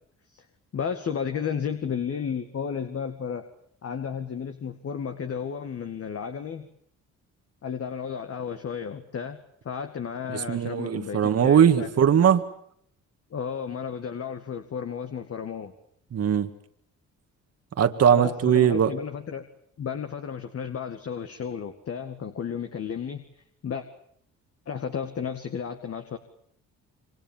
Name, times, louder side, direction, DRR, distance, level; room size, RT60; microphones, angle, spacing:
voice 1, 0.7-3.5 3.8-6.7 7.6-11.9 13.3-15.7 18.1-19.5 19.8-23.3 23.6-23.9 24.7-26.2, left 7 dB, 50° left, 7 dB, 2.1 m, -33 dB
voice 2, 10.3-12.4 16.1-16.5 17.8-18.9, right 8 dB, 55° right, 8 dB, 1.9 m, -20 dB
28.0 x 23.5 x 7.3 m, 0.69 s
cardioid pair, 90°, 30 cm